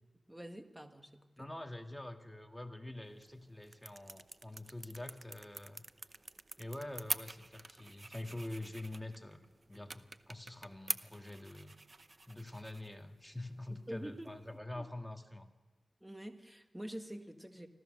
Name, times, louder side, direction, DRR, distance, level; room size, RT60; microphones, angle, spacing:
voice 1, 0.3-1.5 13.7-14.4 14.7-14.8 16.0-17.7, equal, 10° right, 6 dB, 1.7 m, -47 dB
voice 2, 1.4-5.8 6.6-11.7 12.3-15.5, left 1 dB, 5° left, 4 dB, 1.8 m, -46 dB
sound 1, 3.0-14.6, right 3 dB, 40° right, 0.7 m, -47 dB
26.0 x 15.5 x 6.6 m, 1.3 s
wide cardioid pair, 90°, 0 cm